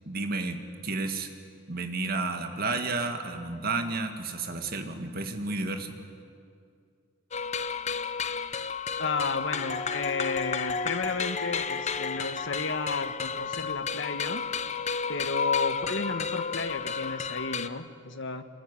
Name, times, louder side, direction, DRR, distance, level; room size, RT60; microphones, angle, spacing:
voice 1, 0.1-1.3 1.7-6.0, right 3 dB, 45° right, 6 dB, 2.0 m, -31 dB
sound 1, 7.3-17.7, left 5 dB, 35° left, 0.7 m, -32 dB
voice 2, 9.0-14.4 15.1-18.4, left 4 dB, 60° left, 9 dB, 1.3 m, -32 dB
24.5 x 20.5 x 9.9 m, 2.3 s
head